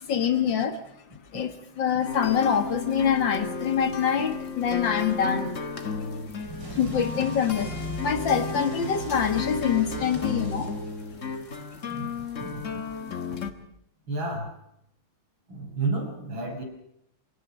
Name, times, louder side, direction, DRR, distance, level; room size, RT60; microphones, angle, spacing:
voice 1, 0.0-5.7 6.7-10.9, left 7 dB, 70° left, 8 dB, 2.4 m, -26 dB
sound 1, 2.0-13.5, left 5 dB, 40° left, 1.9 m, -33 dB
sound 2, 6.4-11.3, left 1 dB, 65° right, 4.4 m, -38 dB
voice 2, 11.9-12.8 13.3-13.4 14.1-14.6 15.5-16.6, right 3 dB, 80° right, 1 dB, 7.4 m, -32 dB
25.5 x 18.0 x 6.4 m, 0.78 s
omnidirectional pair, 2.1 m